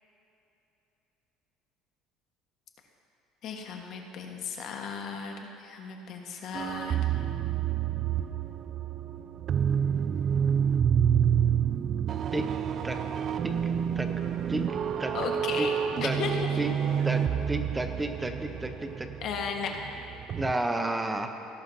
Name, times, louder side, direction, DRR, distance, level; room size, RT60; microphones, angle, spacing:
voice 1, 3.4-7.0 15.1-15.7 16.0-16.6 19.2-19.8, left 6 dB, 55° left, 2 dB, 1.4 m, -35 dB
sound 1, 6.5-20.5, right 8 dB, 40° right, 0.3 m, -28 dB
voice 2, 17.0-19.1 20.3-21.3, right 2 dB, 10° right, 6 dB, 0.8 m, -31 dB
18.0 x 11.5 x 2.8 m, 2.9 s
cardioid pair, 120°, 0 cm